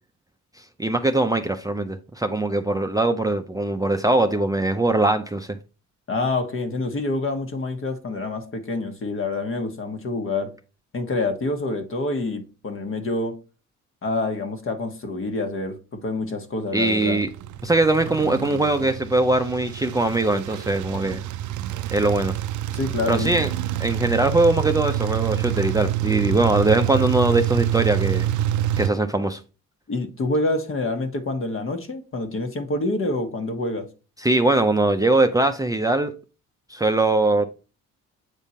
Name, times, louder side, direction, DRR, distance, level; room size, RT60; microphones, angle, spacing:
voice 1, 0.8-5.6 16.7-17.3 17.6-21.2 21.9-22.3 23.1-23.5 23.8-28.3 28.8-29.4 34.2-36.1 36.7-37.5, right 2 dB, 10° right, 0.5 m, -21 dB
voice 2, 6.1-10.5 10.9-13.4 14.0-17.2 22.7-23.3 29.9-33.9, left 2 dB, 45° left, 1.4 m, -27 dB
sound 1, 16.9-28.9, right 12 dB, 75° right, 0.5 m, -27 dB
8.2 x 3.6 x 4.2 m
cardioid pair, 90°, 30 cm